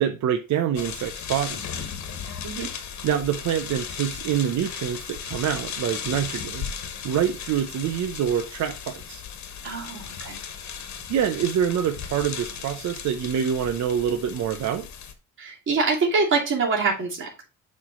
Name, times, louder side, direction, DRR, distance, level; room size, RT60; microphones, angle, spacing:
voice 1, 0.0-1.6 3.0-6.7 7.0-9.2 11.1-14.9, right 9 dB, 65° right, 0.7 m, -26 dB
sound 1, 0.7-15.1, left 7 dB, 65° left, 1.3 m, -36 dB
voice 2, 9.6-10.4 15.4-17.4, right 4 dB, 40° right, 2.5 m, -25 dB
7.1 x 3.3 x 6.1 m
cardioid pair, 90°, 30 cm